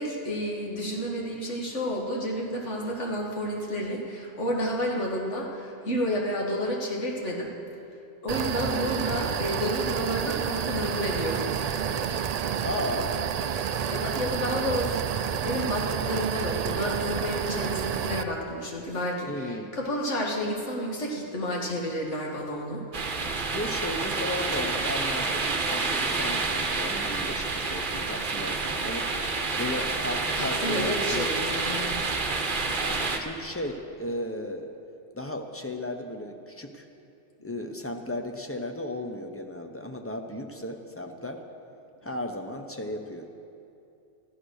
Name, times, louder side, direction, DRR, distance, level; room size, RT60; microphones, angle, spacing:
voice 1, 0.0-7.5 8.2-11.5 11.9-12.1 13.5-22.8 30.4-31.9, equal, 85° left, -1 dB, 2.2 m, -31 dB
sound 1, 8.3-18.2, right 8 dB, 70° right, 0.3 m, -29 dB
voice 2, 12.6-13.1 19.3-19.7 23.5-29.1 29.6-31.3 32.8-34.7 35.1-36.9 37.4-41.4 42.0-43.3, left 1 dB, 15° left, 5 dB, 0.7 m, -35 dB
sound 2, 22.9-33.2, right 3 dB, 45° right, 1.1 m, -28 dB
14.0 x 12.0 x 6.4 m, 2.7 s
omnidirectional pair, 1.2 m